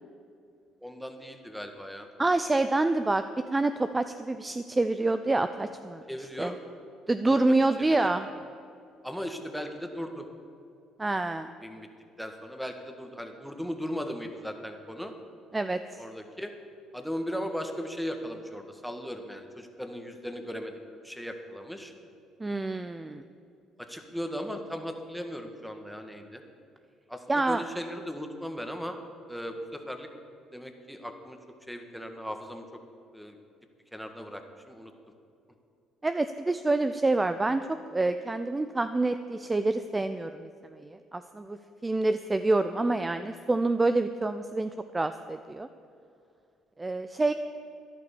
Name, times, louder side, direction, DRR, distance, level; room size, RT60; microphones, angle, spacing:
voice 1, 0.8-2.1 6.1-6.6 7.3-8.2 9.0-10.3 11.6-11.9 12.2-15.1 16.0-16.5 16.9-21.9 23.8-26.4 27.1-29.0 29.3-30.1 30.5-31.4 31.7-32.7 33.1-33.4 33.9-34.9, equal, ahead, 5 dB, 1.6 m, -37 dB
voice 2, 2.2-3.2 3.5-6.0 6.4-6.5 7.1-8.3 11.0-11.5 15.5-16.0 22.4-23.3 27.3-27.6 36.0-45.7 46.8-47.3, right 2 dB, 20° right, 10 dB, 0.5 m, -27 dB
13.5 x 10.5 x 7.1 m, 2.5 s
supercardioid pair, 85°, 0 cm